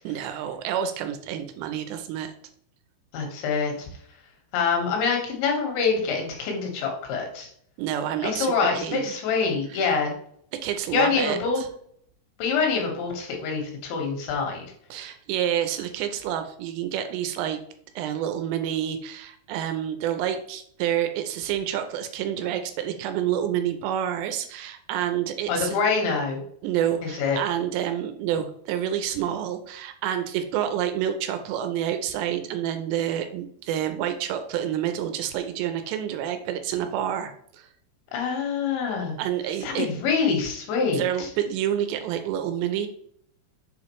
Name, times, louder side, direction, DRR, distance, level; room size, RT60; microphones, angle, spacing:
voice 1, 0.0-2.3 7.8-9.1 9.7-9.9 10.5-11.7 14.9-17.6 18.0-25.8 26.6-37.7 39.2-39.9 40.9-42.9, right 10 dB, 80° right, 8 dB, 2.7 m, -28 dB
voice 2, 3.1-3.9 4.5-7.5 8.2-10.1 10.9-11.6 12.4-14.7 25.5-26.4 27.0-27.4 38.1-39.2 39.6-41.3, left 5 dB, 80° left, 1 dB, 3.6 m, -25 dB
7.2 x 4.9 x 3.1 m, 0.64 s
omnidirectional pair, 5.2 m